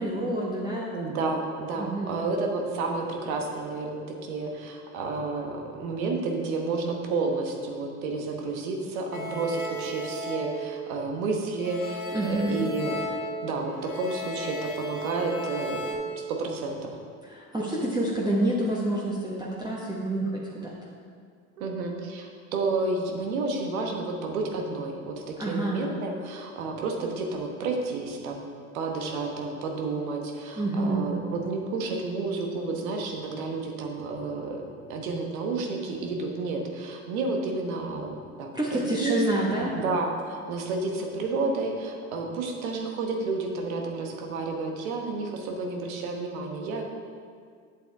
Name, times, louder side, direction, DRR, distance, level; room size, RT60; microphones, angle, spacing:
voice 1, 0.0-0.9 1.8-2.2 12.1-12.6 17.2-20.3 20.6-20.7 25.4-25.8 30.6-31.1 38.5-39.8, right 1 dB, 10° right, -5 dB, 1.3 m, -28 dB
voice 2, 0.9-13.0 13.4-16.9 21.6-28.5 28.7-39.2 39.6-46.8, right 3 dB, 75° right, 2 dB, 1.3 m, -31 dB
sound 1, 9.1-11.3 11.6-15.9, right 1 dB, 80° left, 1.9 m, -35 dB
8.8 x 7.5 x 3.5 m, 2.1 s
hypercardioid pair, 70°, 42 cm